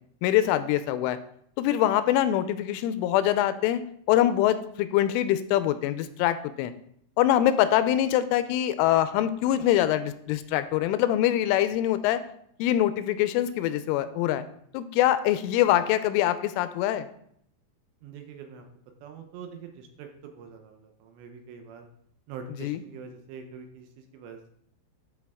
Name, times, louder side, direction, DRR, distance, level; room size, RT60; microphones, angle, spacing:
voice 1, 0.2-1.2 1.6-3.8 4.1-6.7 7.2-12.2 12.6-14.4 14.7-17.1 22.6-22.8, left 12 dB, 85° left, 12 dB, 3.1 m, -24 dB
voice 2, 18.0-18.7 19.0-21.9 22.3-24.5, right 6 dB, 80° right, 4 dB, 2.8 m, -44 dB
12.5 x 4.6 x 3.6 m, 0.68 s
omnidirectional pair, 5.5 m